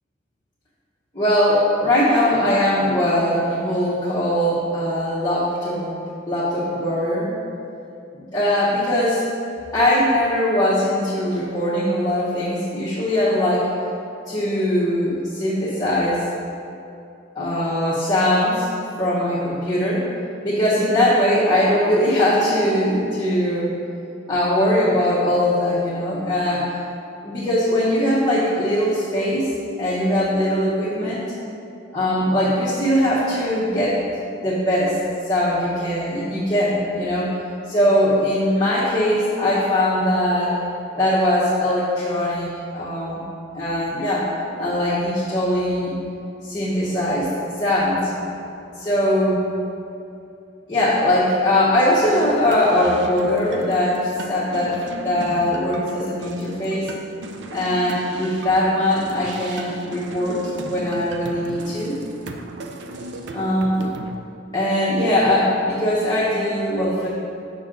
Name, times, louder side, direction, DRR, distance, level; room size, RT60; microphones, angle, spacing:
voice 1, 1.1-5.9 6.3-7.4 8.1-9.2 9.7-13.7 14.3-16.2 17.3-18.7 19.0-20.1 20.4-23.7 24.3-26.7 27.2-31.2 31.9-34.0 34.4-35.0 35.2-37.3 37.7-40.5 40.9-43.2 43.5-44.3 44.6-45.9 46.4-48.1 48.4-49.4 50.7-54.8 55.0-56.9 57.5-62.0 63.3-63.9 64.5-67.1, left 1 dB, 20° left, -10 dB, 1.0 m, -21 dB
sound 1, 51.9-64.1, right 2 dB, 65° right, 0.4 m, -36 dB
6.3 x 5.3 x 3.8 m, 2.6 s
head